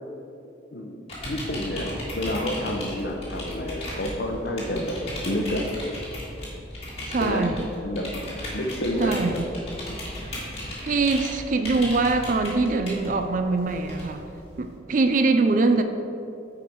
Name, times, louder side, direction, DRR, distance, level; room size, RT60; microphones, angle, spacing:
sound 1, 1.1-14.8, left 1 dB, 30° left, 2.0 m, -36 dB
voice 1, 1.3-5.7 7.2-7.5 7.8-8.2 8.5-9.4 9.9-10.0, left 1 dB, 55° left, 2 dB, 0.8 m, -29 dB
voice 2, 7.1-7.6 9.0-9.4 10.3-10.4 10.8-14.2 14.6-15.8, right 3 dB, 40° right, 7 dB, 0.4 m, -23 dB
9.4 x 4.9 x 4.6 m, 2.7 s
head